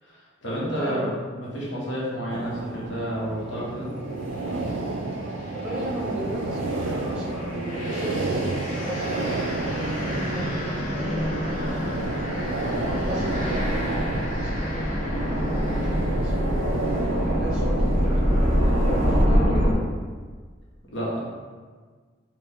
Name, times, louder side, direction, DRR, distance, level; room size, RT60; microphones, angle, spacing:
voice 1, 0.0-3.9 17.3-17.4 20.9-21.2, equal, 70° left, -6 dB, 1.4 m, -30 dB
voice 2, 0.8-1.1 5.5-8.2 8.6-9.4 10.0-12.5 13.0-16.3 17.2-19.8, equal, 5° right, -7 dB, 1.1 m, -35 dB
sound 1, 2.3-19.3, right 2 dB, 80° right, 0.4 m, -31 dB
sound 2, 4.5-4.7 5.3-19.7, equal, 40° left, 0.9 m, -26 dB
4.5 x 2.5 x 3.7 m, 1.5 s
head